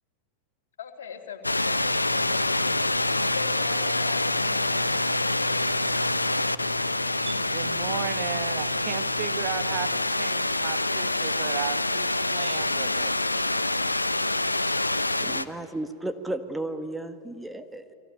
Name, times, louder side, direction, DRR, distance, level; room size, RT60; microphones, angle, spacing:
voice 1, 0.8-3.0 3.3-5.2, left 6 dB, 60° left, 4 dB, 3.1 m, -41 dB
sound 1, 1.4-15.5, left 2 dB, 85° left, 0.8 m, -26 dB
voice 2, 7.0-13.1, right 13 dB, 45° right, 10 dB, 1.5 m, -35 dB
voice 3, 15.2-17.9, right 1 dB, 5° right, 7 dB, 1.4 m, -34 dB
29.0 x 22.5 x 8.7 m, 2.6 s
figure-of-eight pair, 90°, 0 cm